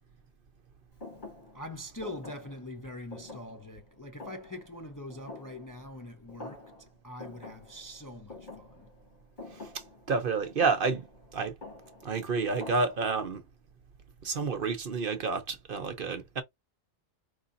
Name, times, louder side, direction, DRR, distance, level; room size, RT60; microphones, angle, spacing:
Thump thud, 1.0-6.0 6.3-6.9 7.2-13.3, left 2 dB, 40° left, 3.2 m, -48 dB
voice 1, 1.5-8.9, left 1 dB, 20° left, 0.5 m, -43 dB
voice 2, 10.1-11.1 11.3-11.5 12.0-13.4 14.2-16.4, right 4 dB, 55° right, 0.9 m, -29 dB
4.9 x 3.4 x 2.6 m
omnidirectional pair, 1.2 m